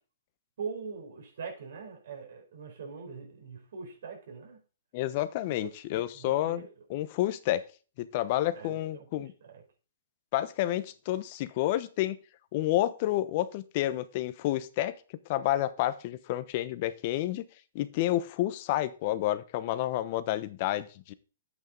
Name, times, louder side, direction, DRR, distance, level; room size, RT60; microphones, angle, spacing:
voice 1, 0.6-4.6 5.4-5.7 6.1-6.7 8.5-9.6, right 5 dB, 65° right, 4.5 m, -42 dB
voice 2, 4.9-6.6 6.9-7.6 8.0-9.3 10.3-12.2 12.5-14.9 15.3-17.4 17.7-21.1, left 14 dB, 40° left, 0.9 m, -29 dB
10.5 x 8.3 x 3.9 m
hypercardioid pair, 140°, 0 cm